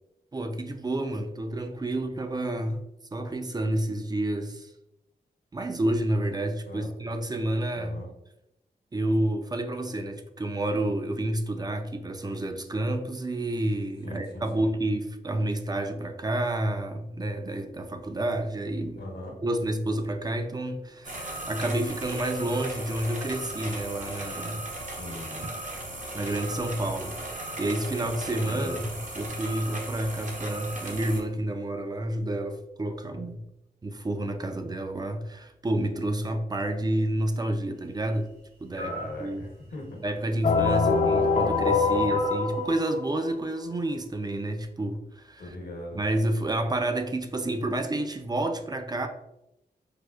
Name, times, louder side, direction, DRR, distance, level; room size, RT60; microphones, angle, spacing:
voice 1, 0.3-2.8 3.1-4.7 5.5-8.0 8.9-19.0 19.4-24.7 26.1-28.9 29.2-33.4 33.8-38.3 38.6-38.9 39.2-39.4 40.0-45.4 46.0-49.1, right 1 dB, 25° right, 7 dB, 0.4 m, -29 dB
voice 2, 7.7-8.1 14.0-14.7 19.0-19.4 24.9-25.4 28.4-28.8 38.7-40.0 40.3-40.4 40.7-41.3 42.0-42.2 45.4-46.0, left 1 dB, 75° left, 0 dB, 0.9 m, -40 dB
sound 1, 21.0-31.2, right 1 dB, 45° right, 0.8 m, -37 dB
sound 2, 38.7-39.2 42.1-42.5, equal, 85° right, 1.1 m, -37 dB
sound 3, 40.4-43.3, left 4 dB, 45° left, 0.4 m, -24 dB
4.8 x 2.1 x 2.3 m, 0.87 s
cardioid pair, 60°, 17 cm